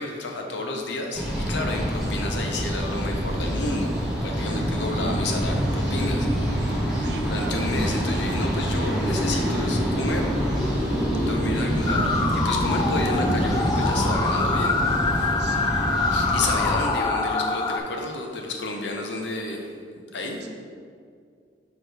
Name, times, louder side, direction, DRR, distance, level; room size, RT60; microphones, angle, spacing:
voice 1, 0.0-3.9 4.2-6.4 7.2-10.3 11.3-14.8 15.1-15.3 16.1-19.7 20.1-20.4, left 2 dB, 75° left, 2 dB, 0.8 m, -31 dB
sound 1, 1.1-16.7, equal, ahead, 1.5 m, -26 dB
sound 2, 4.4-14.0, equal, 20° right, 0.7 m, -33 dB
voice 2, 6.9-7.7 15.3-15.8 20.4-20.5, right 3 dB, 65° right, 3 dB, 0.7 m, -38 dB
sound 3, 11.9-17.8, left 3 dB, 25° left, 0.3 m, -25 dB
4.7 x 4.5 x 4.7 m, 2.2 s
head